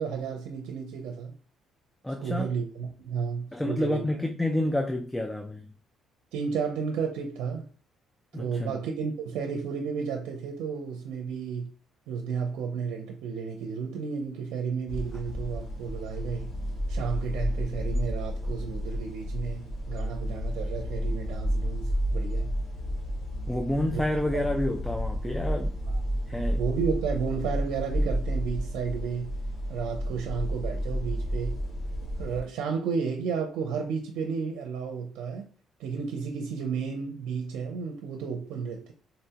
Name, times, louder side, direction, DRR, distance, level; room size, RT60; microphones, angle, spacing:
voice 1, 0.0-1.3 2.2-4.1 6.3-7.7 8.3-11.7 12.1-16.5 16.9-22.5 23.9-24.0 24.3-24.4 26.6-29.3 29.7-31.6 32.2-35.4 35.8-38.9, right 6 dB, 90° right, 0.5 m, -32 dB
voice 2, 2.0-2.5 3.5-5.7 8.3-8.8 23.5-25.8 26.3-26.6, left 1 dB, 10° left, 0.3 m, -29 dB
sound 1, 14.9-32.4, equal, 60° left, 1.2 m, -31 dB
4.0 x 2.1 x 2.8 m
cardioid pair, 125°, 0 cm